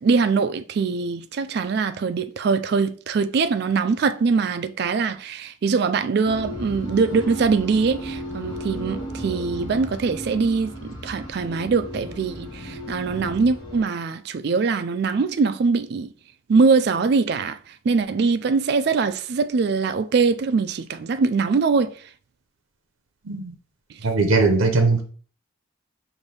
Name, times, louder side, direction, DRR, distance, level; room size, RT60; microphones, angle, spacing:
voice 1, 0.0-10.7 11.0-16.1 16.5-17.6 17.9-21.9, right 4 dB, 50° right, 0.3 m, -22 dB
sound 1, 6.3-13.8, equal, 20° left, 0.9 m, -34 dB
voice 2, 24.0-25.0, right 3 dB, 85° right, 0.6 m, -19 dB
5.4 x 2.6 x 3.3 m
head